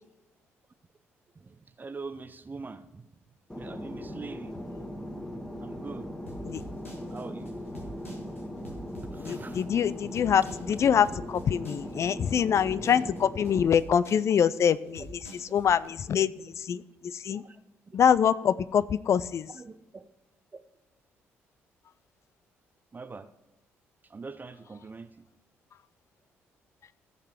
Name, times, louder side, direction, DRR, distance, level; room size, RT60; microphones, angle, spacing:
voice 1, 1.4-3.1 3.6-4.5 5.6-6.1 7.1-7.5 9.1-9.7 17.3-17.6 17.9-18.0 19.5-20.1 20.5-20.6 22.9-23.3 24.1-25.2, right 4 dB, 25° right, 12 dB, 0.7 m, -43 dB
Fixed-wing aircraft airplane, 3.5-13.7, equal, 10° left, 1.8 m, -39 dB
sound 1, 6.3-15.9, right 1 dB, 90° left, 1.4 m, -47 dB
voice 2, 9.2-17.4 17.9-19.5, left 8 dB, 45° left, 17 dB, 0.5 m, -25 dB
14.5 x 6.7 x 5.0 m, 0.94 s
figure-of-eight pair, 45°, 7 cm